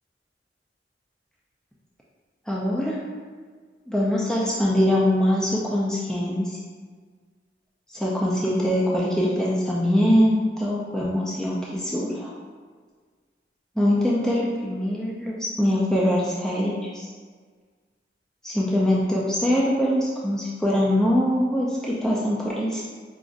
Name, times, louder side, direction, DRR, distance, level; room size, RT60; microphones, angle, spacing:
voice 1, 2.5-3.0 3.9-6.6 7.9-12.3 13.8-17.1 18.4-22.8, equal, 5° left, -6 dB, 0.3 m, -23 dB
5.0 x 2.5 x 2.4 m, 1.6 s
head